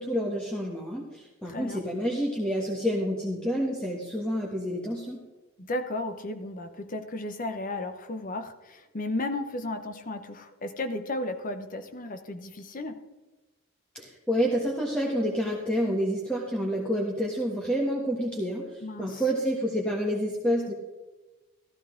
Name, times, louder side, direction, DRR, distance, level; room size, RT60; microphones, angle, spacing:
voice 1, 0.0-5.2 13.9-20.7, equal, 5° left, -2 dB, 1.3 m, -28 dB
voice 2, 1.4-1.8 5.6-13.0 18.8-19.2, left 2 dB, 40° left, 8 dB, 0.8 m, -34 dB
14.0 x 13.0 x 3.8 m, 1.2 s
head